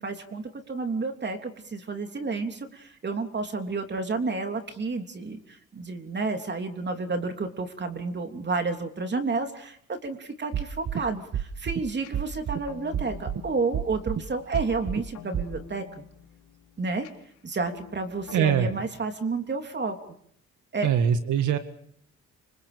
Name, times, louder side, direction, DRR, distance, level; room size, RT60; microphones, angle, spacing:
voice 1, 0.0-16.0 16.8-17.1 17.4-20.0 20.7-20.9, right 3 dB, 35° right, 5 dB, 3.3 m, -31 dB
sound 1, 10.5-11.0 11.3-11.8 12.1-12.6 12.9-13.4 13.7-14.2 14.5-15.0 15.3-15.5, right 9 dB, 55° right, 1.8 m, -29 dB
sound 2, 12.0-18.8, left 10 dB, 85° left, 3.5 m, -49 dB
voice 2, 18.3-18.7 20.8-21.6, right 8 dB, 80° right, 8 dB, 2.0 m, -22 dB
29.0 x 26.5 x 5.2 m, 0.66 s
cardioid pair, 90°, 30 cm